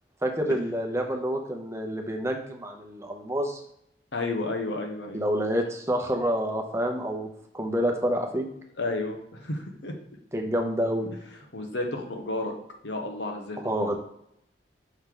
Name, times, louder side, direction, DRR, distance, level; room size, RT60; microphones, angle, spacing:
voice 1, 0.2-3.6 5.1-8.5 10.3-11.1 13.6-14.0, equal, 15° right, 3 dB, 0.8 m, -28 dB
voice 2, 4.1-5.2 8.8-9.9 11.5-12.5 12.8-14.0, left 2 dB, 85° left, 3 dB, 1.1 m, -32 dB
5.6 x 4.6 x 3.8 m, 0.74 s
head